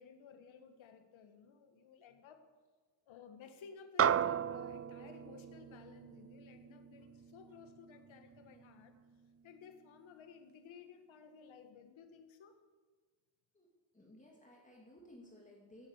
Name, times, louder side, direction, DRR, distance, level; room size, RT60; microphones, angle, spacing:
voice 1, 0.0-2.4 3.0-8.9 9.4-12.5, left 6 dB, 85° left, 7 dB, 1.8 m, -56 dB
sound 1, 4.0-8.6, right 8 dB, 35° right, 0.5 m, -36 dB
voice 2, 13.9-15.9, left 1 dB, 15° left, -2 dB, 2.5 m, -58 dB
14.0 x 9.5 x 8.3 m, 1.4 s
cardioid pair, 100°, 46 cm